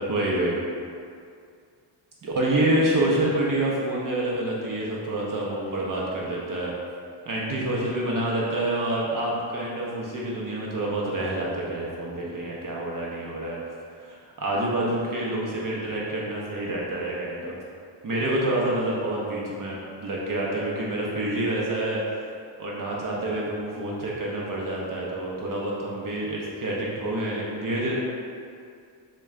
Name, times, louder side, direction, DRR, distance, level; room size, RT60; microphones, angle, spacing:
voice 1, 0.1-0.6 2.2-6.7 7.3-13.6 13.9-17.5 18.0-22.0 22.6-27.9, right 1 dB, 40° right, -4 dB, 0.6 m, -27 dB
4.1 x 2.2 x 3.6 m, 2.3 s
cardioid pair, 115°, 50 cm